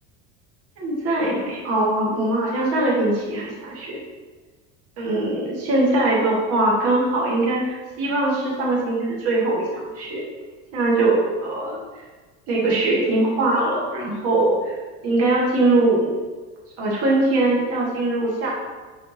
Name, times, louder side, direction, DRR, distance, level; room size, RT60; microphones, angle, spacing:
voice 1, 0.8-4.0 5.0-10.2 10.7-11.8 12.5-14.8 15.0-16.1 16.8-18.5, right 2 dB, 50° right, -4 dB, 1.4 m, -21 dB
5.6 x 3.2 x 2.7 m, 1.3 s
cardioid pair, 150°, 31 cm